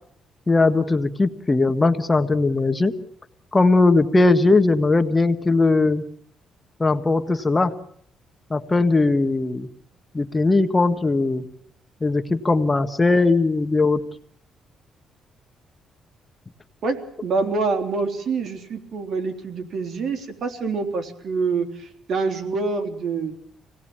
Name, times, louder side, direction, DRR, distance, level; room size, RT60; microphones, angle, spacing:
voice 1, 0.5-2.9 3.5-6.0 6.8-7.7 8.5-9.7 10.1-11.4 12.0-14.0, left 3 dB, 20° left, 7 dB, 1.6 m, -19 dB
voice 2, 16.8-23.3, right 4 dB, 60° right, 7 dB, 3.7 m, -26 dB
26.5 x 18.0 x 8.9 m, 0.65 s
cardioid pair, 90°, 0 cm